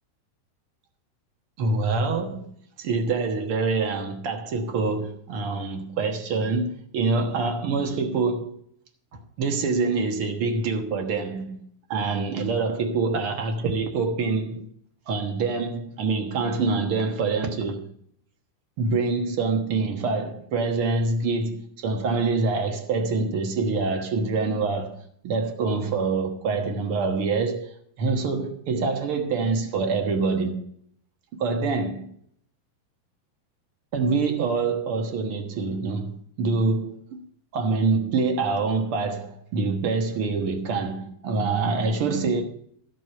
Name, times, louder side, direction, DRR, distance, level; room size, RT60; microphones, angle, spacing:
voice 1, 1.6-2.5 2.8-8.6 9.1-11.6 11.9-14.7 15.1-17.9 18.8-25.0 25.2-30.6 31.3-32.1 33.9-37.2 37.5-42.4, right 4 dB, 85° right, 1.2 m, -25 dB
15.5 x 6.3 x 6.8 m
omnidirectional pair, 4.7 m